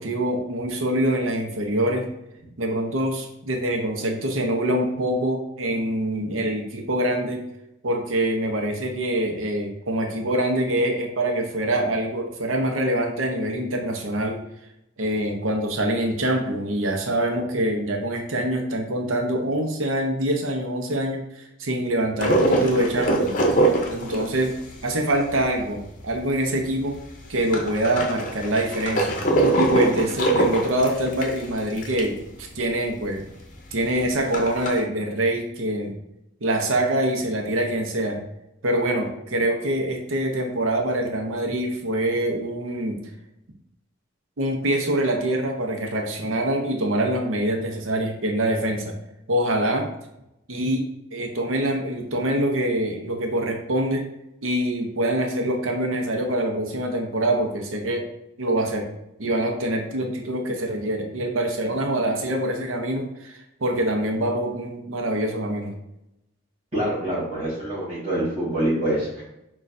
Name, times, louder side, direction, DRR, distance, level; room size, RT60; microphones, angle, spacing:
voice 1, 0.0-2.1 2.6-7.4 7.8-14.4 15.0-23.4 23.9-24.5 24.8-26.9 27.3-29.2 29.6-33.2 33.7-35.9 36.4-38.2 38.6-43.0 44.4-49.0 49.3-49.9 50.5-50.8 51.1-54.0 54.4-58.0 58.4-58.9 59.2-65.8, right 1 dB, 80° right, 2 dB, 0.7 m, -25 dB
sound 1, 22.2-26.2 26.6-26.7 26.9-32.2 32.6-32.7 32.9-33.0 33.5-34.8, right 1 dB, 40° left, 0.6 m, -23 dB
voice 2, 66.7-69.2, right 1 dB, 30° right, -11 dB, 1.2 m, -25 dB
6.2 x 2.4 x 2.6 m, 0.84 s
head